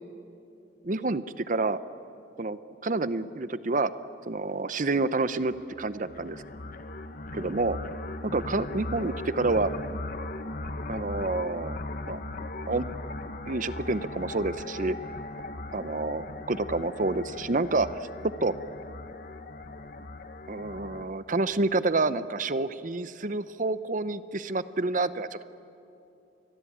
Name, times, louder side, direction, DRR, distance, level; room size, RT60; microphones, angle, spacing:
voice 1, 0.8-1.8 2.4-3.9 4.3-6.4 7.3-7.8 8.2-9.7 10.9-11.8 12.1-12.2 12.7-12.8 13.5-15.0 15.7-18.1 18.4-18.5 20.5-25.4, right 3 dB, 45° right, 14 dB, 0.8 m, -28 dB
sound 1, 5.5-21.1, left 2 dB, 50° left, 1.3 m, -38 dB
29.0 x 21.5 x 8.7 m, 2.8 s
head